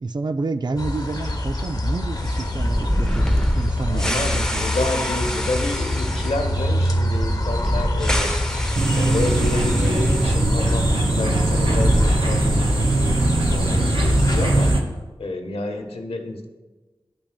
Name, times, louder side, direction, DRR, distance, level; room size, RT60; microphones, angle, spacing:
voice 1, 0.0-4.6, right 3 dB, 50° right, 10 dB, 0.4 m, -29 dB
sound 1, 0.8-14.7, left 1 dB, 40° left, 0.9 m, -26 dB
sound 2, 2.2-10.4 10.7-10.8 11.4-12.8, equal, 5° left, 0.7 m, -26 dB
voice 2, 3.8-8.4 8.9-14.8 15.2-16.5, left 2 dB, 85° left, 5 dB, 0.8 m, -29 dB
sound 3, 8.7-14.8, right 2 dB, 70° right, 0.8 m, -20 dB
11.5 x 5.9 x 2.2 m, 1.2 s
wide cardioid pair, 70°, 10 cm